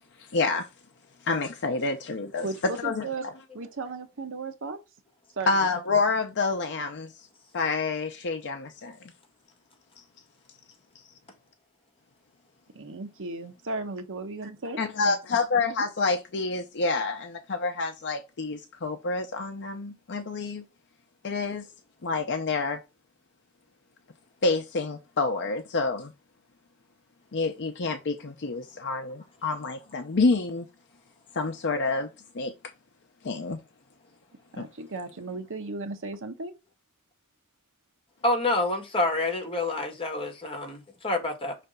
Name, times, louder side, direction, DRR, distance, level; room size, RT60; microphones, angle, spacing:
voice 1, 0.3-0.7 1.2-2.5 2.8-3.0 5.5-7.3 7.5-9.1 14.8-20.6 21.2-21.6 22.0-22.8 24.4-26.1 27.3-30.7 31.4-32.1 32.3-32.5 33.2-33.6 34.6-34.7, left 3 dB, 55° left, 0.7 m, -28 dB
voice 2, 2.4-3.3 3.5-4.8 5.4-5.7 12.7-14.8 34.5-36.5, right 3 dB, 60° right, 1.1 m, -35 dB
voice 3, 38.2-41.6, left 2 dB, 25° left, 1.6 m, -27 dB
5.7 x 3.3 x 5.2 m
head